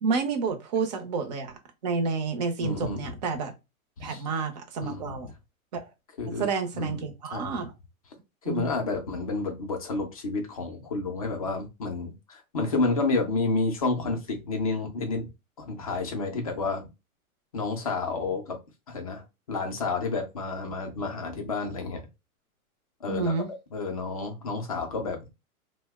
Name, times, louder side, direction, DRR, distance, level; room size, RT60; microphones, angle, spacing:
voice 1, 0.0-3.5 4.0-5.3 5.7-5.9 6.3-7.7 8.4-8.6 23.1-23.5, right 4 dB, 30° right, 0.5 m, -30 dB
voice 2, 2.6-3.1 4.0-4.2 4.8-5.2 6.2-6.5 6.7-7.0 7.3-7.5 8.5-15.3 15.6-16.9 17.5-18.6 18.9-19.2 19.5-22.0 23.0-23.3 23.7-25.3, left 3 dB, 30° left, 0.4 m, -30 dB
2.6 x 2.1 x 3.4 m
hypercardioid pair, 150°, 43 cm